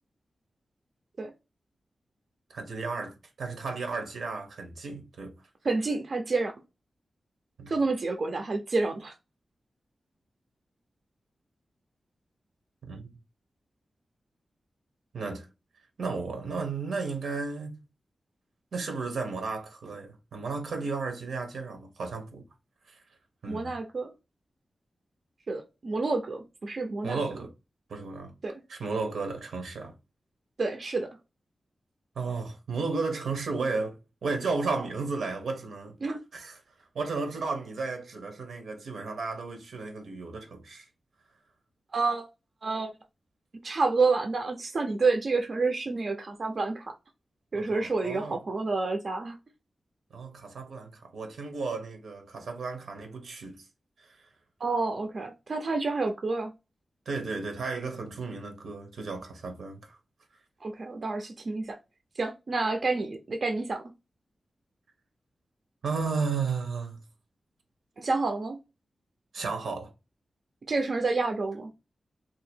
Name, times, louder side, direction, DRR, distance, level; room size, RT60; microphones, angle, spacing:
voice 1, 2.5-5.3 7.6-7.7 12.8-13.0 15.1-15.5 16.0-17.8 18.7-22.4 22.9-23.0 23.4-23.8 27.0-27.5 27.9-28.3 28.7-29.9 32.1-35.9 36.3-36.6 36.9-40.9 47.5-48.4 50.1-53.6 54.0-54.3 57.1-60.0 65.8-67.0 69.3-69.9, right 4 dB, 90° right, 1.0 m, -34 dB
voice 2, 5.6-6.5 7.7-9.1 23.5-24.1 25.5-27.2 28.4-28.6 30.6-31.1 36.0-36.2 41.9-42.3 42.6-42.9 43.6-46.9 47.5-49.4 54.6-56.5 60.6-61.8 62.2-63.8 68.0-68.6 70.7-71.7, right 3 dB, 50° right, 0.5 m, -29 dB
2.8 x 2.5 x 4.3 m
wide cardioid pair, 150°, 0 cm